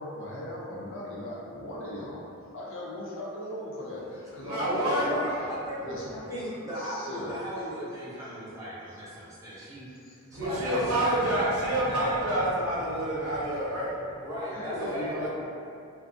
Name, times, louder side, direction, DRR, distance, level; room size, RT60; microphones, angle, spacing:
voice 1, 0.0-2.3 2.5-5.5 5.8-6.2 6.7-7.4 8.9-9.0 9.9-10.2 14.5-15.3, left 1 dB, 60° left, -5 dB, 0.4 m, -38 dB
voice 2, 4.4-5.1 10.3-14.3 14.8-15.3, right 1 dB, 85° right, -7 dB, 0.6 m, -28 dB
voice 3, 5.0-5.8 6.1-9.9 10.3-12.5 14.2-15.3, equal, 15° right, -10 dB, 0.6 m, -36 dB
2.4 x 2.2 x 2.5 m, 2.5 s
head